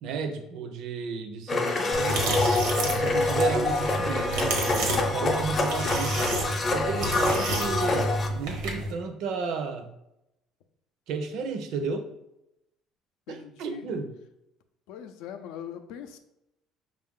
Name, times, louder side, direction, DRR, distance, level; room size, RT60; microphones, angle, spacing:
voice 1, 0.0-2.4 2.8-4.6 5.1-6.3 6.7-9.9 11.1-12.1 13.3-14.1, right 5 dB, 70° right, 7 dB, 0.6 m, -33 dB
Domestic sounds home sounds, 1.5-8.3, left 3 dB, 35° left, 0.6 m, -26 dB
Bowed string instrument, 1.9-5.1, right 2 dB, 5° right, 0.4 m, -40 dB
sound 1, 1.9-8.9, right 1 dB, 90° right, 1.0 m, -30 dB
voice 2, 13.3-13.9 14.9-16.2, left 9 dB, 85° left, 8 dB, 0.4 m, -41 dB
5.4 x 2.4 x 3.6 m, 0.86 s
cardioid pair, 115°, 0 cm